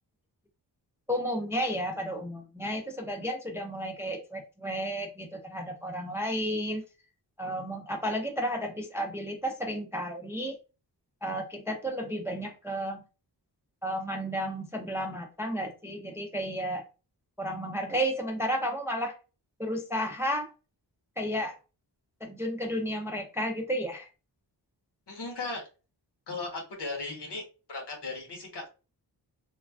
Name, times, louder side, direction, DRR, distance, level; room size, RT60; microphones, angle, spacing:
voice 1, 1.1-6.8 7.4-10.6 11.2-13.0 13.8-16.8 17.4-19.1 19.6-20.5 21.2-21.6 22.2-24.1, equal, 5° right, 2 dB, 0.4 m, -32 dB
voice 2, 25.1-25.7 26.3-27.4 27.7-28.7, left 3 dB, 70° left, 1 dB, 1.1 m, -36 dB
3.1 x 2.3 x 2.3 m, 0.33 s
wide cardioid pair, 105°, 43 cm